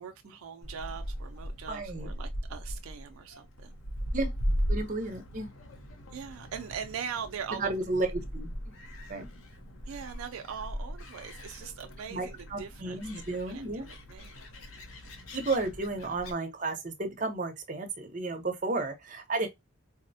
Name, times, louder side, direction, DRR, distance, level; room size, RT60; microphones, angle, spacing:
voice 1, 0.0-3.8 6.1-7.7 9.9-13.0 13.5-14.5, right 7 dB, 80° right, 0.4 m, -41 dB
Gull seagull, 0.6-16.3, equal, 75° left, 0.7 m, -38 dB
voice 2, 1.7-2.1 4.1-4.3 4.7-5.5 7.6-8.1 8.3-8.8 9.1-9.2 12.1-13.9 15.3-19.5, right 3 dB, 35° right, 0.7 m, -33 dB
4.0 x 2.0 x 2.6 m
head